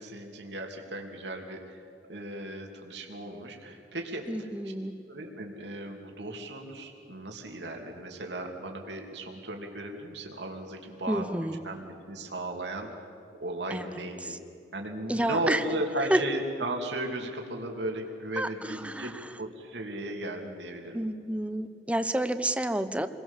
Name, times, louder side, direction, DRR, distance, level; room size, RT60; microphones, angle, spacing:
voice 1, 0.0-1.8 2.1-4.7 5.1-13.1 13.4-14.4 14.7-19.1 19.4-21.0, right 1 dB, 75° right, 2 dB, 3.0 m, -36 dB
voice 2, 4.3-4.9 11.1-11.5 13.7-14.0 14.3-14.4 15.1-15.6 16.1-16.2 18.4-19.1 20.9-23.1, right 1 dB, 5° right, 10 dB, 0.9 m, -29 dB
28.5 x 22.0 x 7.3 m, 2.5 s
head